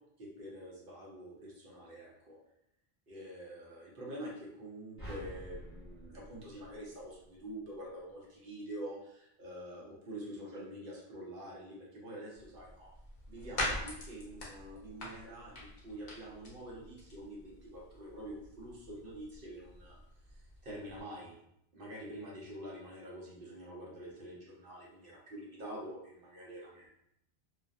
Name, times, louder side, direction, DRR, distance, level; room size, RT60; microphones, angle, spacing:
voice 1, 0.2-2.4 3.1-12.9 13.3-20.0 20.3-21.3 21.7-26.9, right 1 dB, 60° right, -4 dB, 0.8 m, -46 dB
sound 1, 5.0-7.4, equal, 15° right, 0.6 m, -48 dB
sound 2, 12.3-21.0, left 1 dB, 50° left, 0.7 m, -44 dB
2.4 x 2.0 x 2.5 m, 0.76 s
omnidirectional pair, 1.1 m